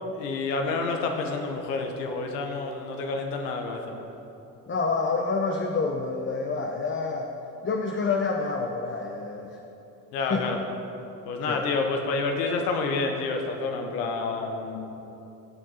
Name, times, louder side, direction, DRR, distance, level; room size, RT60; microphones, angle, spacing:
voice 1, 0.2-3.9 10.1-10.6 11.3-14.8, left 3 dB, 75° left, 3 dB, 1.2 m, -29 dB
voice 2, 4.7-7.3 7.6-9.6 10.3-10.5 11.5-11.6, left 4 dB, 25° left, 2 dB, 0.9 m, -28 dB
17.0 x 6.2 x 4.2 m, 3.0 s
hypercardioid pair, 50°, 49 cm